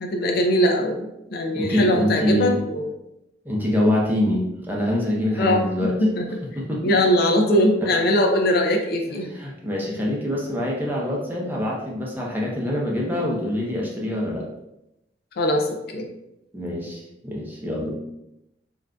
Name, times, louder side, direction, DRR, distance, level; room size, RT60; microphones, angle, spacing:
voice 1, 0.0-2.9 5.4-5.6 6.0-6.3 6.8-9.3 15.4-16.1, left 1 dB, 55° left, 2 dB, 0.4 m, -21 dB
voice 2, 1.5-2.6 3.4-5.9 6.6-7.0 7.8-7.9 9.3-14.4 16.5-17.9, left 1 dB, 10° right, -4 dB, 0.6 m, -25 dB
3.6 x 2.5 x 2.2 m, 0.86 s
head